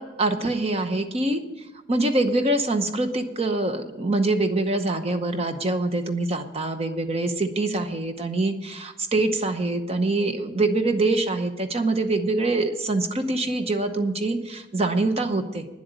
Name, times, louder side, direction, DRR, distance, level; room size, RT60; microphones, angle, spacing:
voice 1, 0.0-1.4 1.9-15.7, right 2 dB, 35° right, 8 dB, 0.8 m, -24 dB
10.0 x 7.9 x 9.2 m, 1.0 s
head